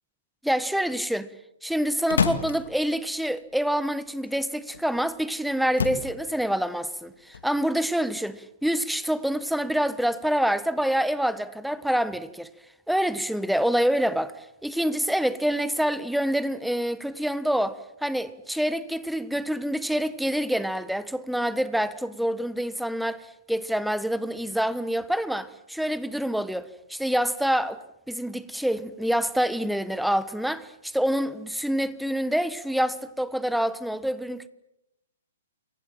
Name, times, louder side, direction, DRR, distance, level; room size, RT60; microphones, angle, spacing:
voice 1, 0.4-1.3 1.6-12.5 12.9-34.5, equal, ahead, 1.2 m, -26 dB
sound 1, 1.7-4.3 4.7-5.2 5.5-6.6 6.9-8.0, left 6 dB, 70° left, 2.5 m, -30 dB
28.5 x 24.0 x 7.4 m
figure-of-eight pair, 120°, 0 cm